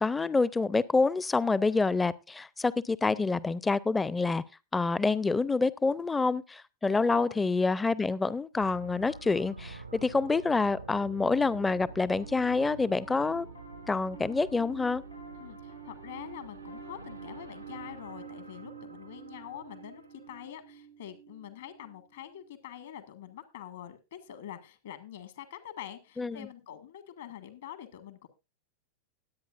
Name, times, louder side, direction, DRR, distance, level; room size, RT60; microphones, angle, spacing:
voice 1, 0.0-4.4 4.7-13.5 13.9-15.0 26.2-26.5, left 3 dB, 10° left, 0.5 m, -27 dB
voice 2, 6.9-7.4 15.4-28.3, left 11 dB, 60° left, 1.6 m, -45 dB
sound 1, 8.5-20.5, right 4 dB, 80° right, 0.7 m, -48 dB
Piano, 11.4-22.9, right 6 dB, 90° left, 3.3 m, -50 dB
20.0 x 8.6 x 2.5 m
figure-of-eight pair, 90°, 0 cm